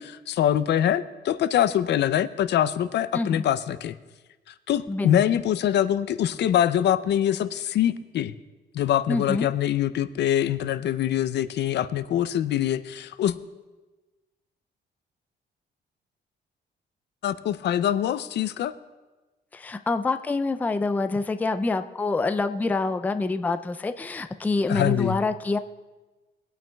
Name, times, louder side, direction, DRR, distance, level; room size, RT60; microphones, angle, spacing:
voice 1, 0.0-3.9 4.7-8.3 8.7-13.4 17.2-18.7 24.7-25.2, left 11 dB, 65° left, 14 dB, 0.5 m, -24 dB
voice 2, 3.1-3.4 4.9-5.2 9.1-9.5 19.5-25.6, left 3 dB, 10° left, 9 dB, 0.3 m, -26 dB
21.0 x 9.1 x 2.3 m, 1.2 s
cardioid pair, 130°, 19 cm